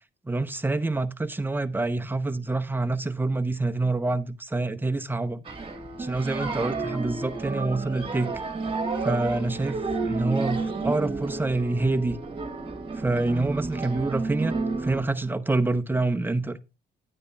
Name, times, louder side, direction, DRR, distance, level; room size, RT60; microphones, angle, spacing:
voice 1, 0.3-5.4 6.0-8.3 9.0-12.2 12.9-16.6, right 2 dB, 10° right, 0.7 m, -27 dB
sound 1, 5.4-15.0, right 3 dB, 25° right, 1.5 m, -31 dB
9.8 x 9.4 x 2.3 m
cardioid pair, 90°, 20 cm